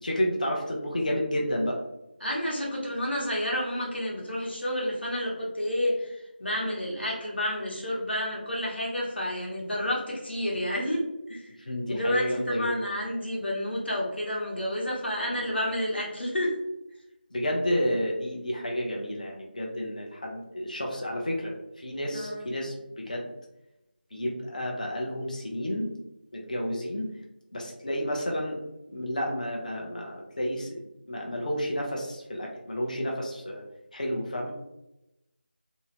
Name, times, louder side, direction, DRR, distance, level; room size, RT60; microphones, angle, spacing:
voice 1, 0.0-1.8 11.7-12.7 15.3-15.4 17.3-23.3 24.1-25.9 26.3-27.1 27.5-28.6 28.9-30.8 31.1-33.6 33.9-34.5, equal, 45° left, -1 dB, 0.6 m, -31 dB
voice 2, 2.2-11.0 11.3-16.6 22.1-22.5, left 1 dB, 80° left, -3 dB, 1.1 m, -30 dB
2.7 x 2.0 x 2.8 m, 0.90 s
figure-of-eight pair, 175°, 6 cm